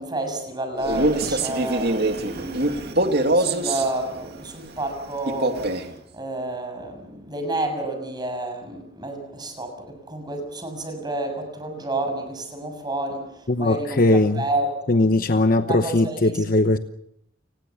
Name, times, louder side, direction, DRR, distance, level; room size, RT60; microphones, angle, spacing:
voice 1, 0.0-15.0 15.7-16.4, right 2 dB, 25° right, 6.8 m, -30 dB
Male speech man speaking, 0.8-3.9 5.3-5.9, right 2 dB, 60° right, 2.5 m, -23 dB
voice 2, 13.5-14.4 14.9-16.8, left 2 dB, 50° left, 1.0 m, -19 dB
29.5 x 20.0 x 7.2 m
head